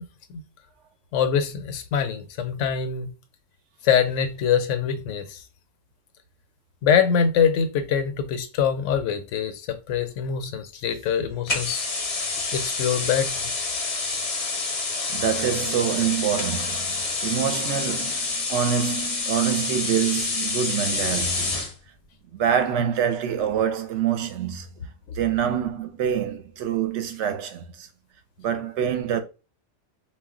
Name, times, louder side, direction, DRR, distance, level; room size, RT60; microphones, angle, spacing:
voice 1, 1.1-3.1 3.8-5.4 6.8-11.9 12.5-13.5, left 7 dB, 75° left, 0.9 m, -24 dB
sound 1, 11.5-21.7, left 3 dB, 40° left, 0.5 m, -28 dB
voice 2, 15.1-21.7 22.3-24.7 25.1-27.9 28.4-29.2, right 9 dB, 70° right, 0.9 m, -26 dB
2.3 x 2.1 x 3.6 m
omnidirectional pair, 1.3 m